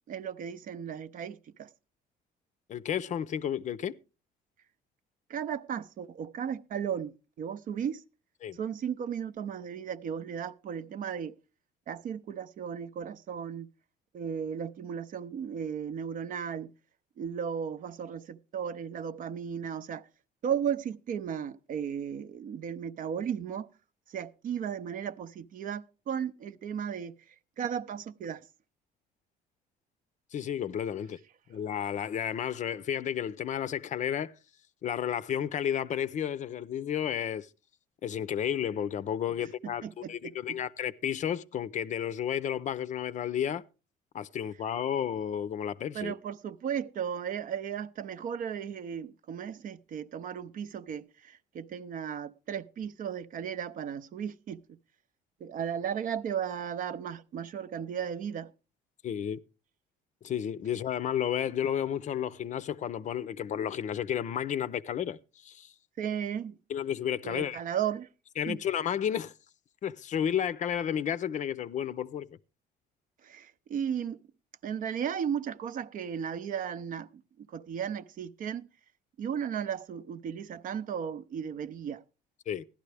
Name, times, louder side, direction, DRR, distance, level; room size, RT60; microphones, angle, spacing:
voice 1, 0.1-1.7 5.3-8.0 8.5-11.3 11.9-13.7 14.1-16.7 17.2-20.1 20.4-23.7 24.1-28.4 39.6-40.6 45.9-54.8 55.4-58.5 66.0-66.6 67.2-68.1 68.5-68.6 73.2-74.2 74.6-78.7 79.2-82.0, right 8 dB, 55° right, 0.6 m, -35 dB
voice 2, 2.7-4.0 8.4-8.6 30.3-31.2 31.5-34.3 34.8-37.5 38.0-43.6 44.1-46.1 59.0-59.4 60.2-65.7 66.7-67.6 68.4-69.3 69.8-72.3 82.5-82.6, left 9 dB, 45° left, 0.5 m, -32 dB
15.5 x 11.5 x 3.3 m
cardioid pair, 110°, 17 cm